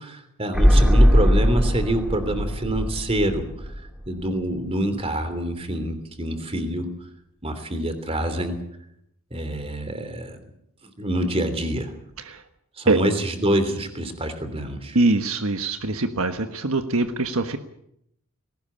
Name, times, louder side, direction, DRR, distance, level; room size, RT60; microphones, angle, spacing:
voice 1, 0.0-3.5 4.1-6.9 7.4-8.6 9.3-10.4 11.0-11.9 12.8-15.0, right 1 dB, 25° right, 9 dB, 3.1 m, -26 dB
sound 1, 0.5-4.3 4.6-4.7, equal, ahead, 2.5 m, -19 dB
voice 2, 14.9-17.6, right 2 dB, 70° right, 7 dB, 1.4 m, -23 dB
20.0 x 18.0 x 8.7 m, 0.76 s
head